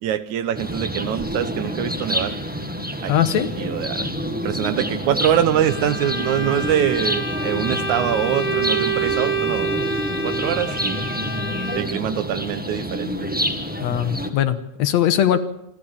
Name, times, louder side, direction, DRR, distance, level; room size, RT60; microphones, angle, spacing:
voice 1, 0.0-2.4 3.0-3.1 3.6-9.8 10.2-11.1 11.7-13.2, right 10 dB, 85° right, 11 dB, 2.4 m, -24 dB
sound 1, 0.5-14.3, equal, 5° right, 0.9 m, -28 dB
voice 2, 3.1-3.5 13.8-15.4, left 10 dB, 75° left, 10 dB, 2.2 m, -20 dB
Bowed string instrument, 5.5-12.1, right 3 dB, 30° left, 0.8 m, -27 dB
27.0 x 13.5 x 7.2 m, 0.86 s
omnidirectional pair, 3.4 m